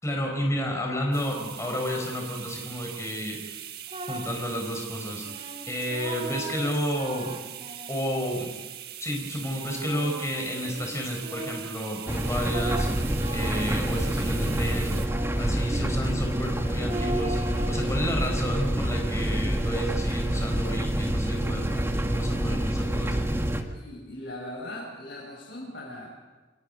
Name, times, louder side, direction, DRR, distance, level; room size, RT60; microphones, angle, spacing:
voice 1, 0.0-3.6 4.1-5.2 5.7-7.3 7.9-8.5 9.0-12.9 13.3-15.1 15.4-23.2, equal, 15° left, 1 dB, 4.7 m, -31 dB
sound 1, 1.1-15.1, right 11 dB, 60° right, 1.5 m, -41 dB
sound 2, 3.9-4.5 5.3-8.5 9.3-11.9 12.5-15.6 16.9-18.0, right 1 dB, 35° right, 2.1 m, -39 dB
sound 3, 12.1-23.6, right 1 dB, 15° right, 1.6 m, -27 dB
voice 2, 23.7-26.1, left 1 dB, 65° left, -5 dB, 6.7 m, -39 dB
29.0 x 22.5 x 5.4 m, 1.2 s
head